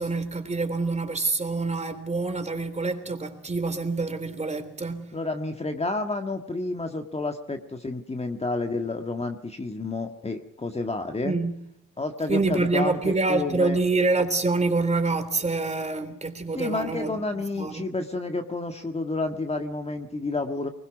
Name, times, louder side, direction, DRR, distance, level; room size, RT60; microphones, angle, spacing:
voice 1, 0.0-5.1 11.2-11.5 12.3-17.2 17.5-17.8, right 3 dB, 20° right, 3.4 m, -26 dB
voice 2, 5.1-11.4 12.0-13.8 16.6-20.7, left 2 dB, 20° left, 1.7 m, -30 dB
23.5 x 21.0 x 6.0 m
cardioid pair, 90°, 30 cm